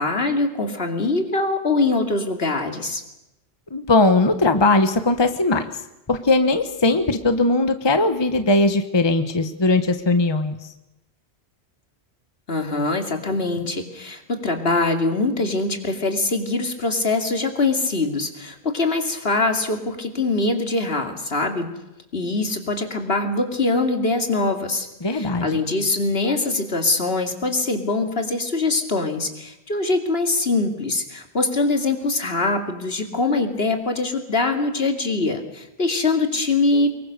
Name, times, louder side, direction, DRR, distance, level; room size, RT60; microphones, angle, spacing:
voice 1, 0.0-3.0 12.5-21.7 22.1-37.0, left 3 dB, 65° left, 5 dB, 2.8 m, -23 dB
voice 2, 3.7-5.6 6.1-10.6 25.0-25.5, left 2 dB, 25° left, 9 dB, 1.1 m, -19 dB
24.5 x 22.0 x 6.7 m, 0.92 s
omnidirectional pair, 1.1 m